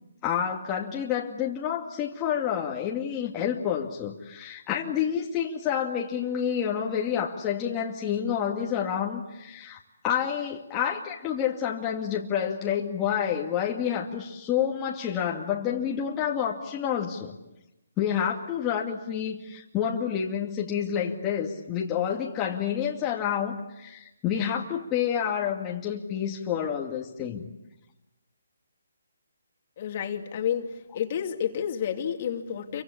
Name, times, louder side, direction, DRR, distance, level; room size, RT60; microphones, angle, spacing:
voice 1, 0.2-17.4 18.0-27.5, left 8 dB, 20° left, -2 dB, 2.3 m, -29 dB
voice 2, 29.8-30.7 30.9-32.8, left 9 dB, 40° left, 5 dB, 2.7 m, -30 dB
28.5 x 24.5 x 8.5 m, 0.92 s
hypercardioid pair, 155°, 0 cm